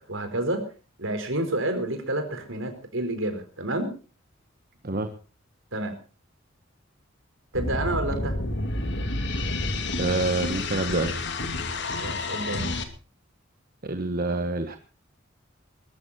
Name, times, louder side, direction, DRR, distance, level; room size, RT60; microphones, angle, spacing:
voice 1, 0.1-0.6 1.0-3.9 5.7-5.9 7.5-8.4 11.9-12.8, right 1 dB, 70° right, 7 dB, 4.6 m, -29 dB
sound 1, 7.5-12.8, left 2 dB, 60° left, 2.4 m, -29 dB
voice 2, 10.0-11.2 13.8-14.8, right 2 dB, 45° right, 7 dB, 1.4 m, -27 dB
21.5 x 13.5 x 4.2 m, 0.36 s
head